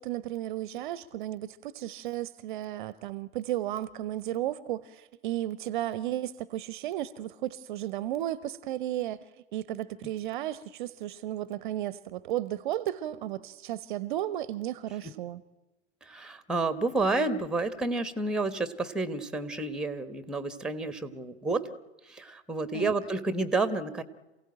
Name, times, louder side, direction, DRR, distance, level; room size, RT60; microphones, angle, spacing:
voice 1, 0.0-9.2 9.5-15.4 22.7-23.0, right 13 dB, 40° right, 0.8 m, -34 dB
voice 2, 16.0-21.7 22.1-24.0, right 3 dB, ahead, 1.2 m, -30 dB
27.5 x 16.5 x 9.0 m
figure-of-eight pair, 100°, 36 cm